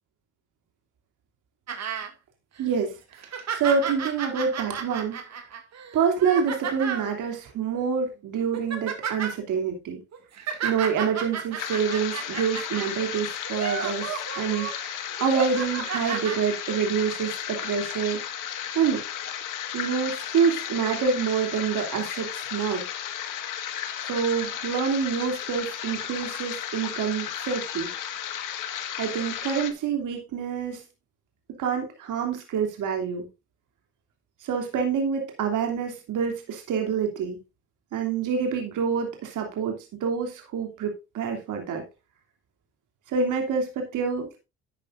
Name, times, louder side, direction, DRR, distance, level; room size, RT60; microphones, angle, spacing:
sound 1, 1.7-2.1 2.6-2.7 3.1-7.1 7.8-8.0 8.4-9.3 10.1-12.9 13.4-14.7 15.2-16.4 17.3-17.4, right 7 dB, 55° right, 2.4 m, -33 dB
voice 1, 2.6-3.2 3.5-5.5 5.9-10.0 10.6-18.2 18.7-19.0 19.7-22.9 24.0-27.9 29.0-30.8 31.6-33.3 34.4-37.4 37.9-41.8 43.1-44.4, right 6 dB, 70° right, 3.0 m, -27 dB
sound 2, 11.6-29.7, left 10 dB, 70° left, 1.8 m, -34 dB
12.0 x 8.4 x 2.6 m
supercardioid pair, 80°, 32 cm